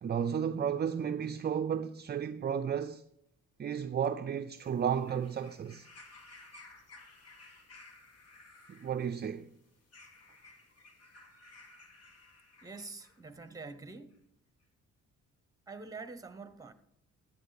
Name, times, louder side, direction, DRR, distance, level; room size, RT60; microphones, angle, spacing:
voice 1, 0.0-3.0 3.6-5.9 8.7-9.5, right 8 dB, 35° right, 0.5 m, -33 dB
sound 1, 4.5-13.2 14.1-14.2, left 2 dB, 55° left, 2.0 m, -57 dB
voice 2, 12.6-14.2 15.7-16.7, right 4 dB, 10° right, 1.1 m, -46 dB
13.5 x 8.9 x 4.1 m
cardioid pair, 90°, 30 cm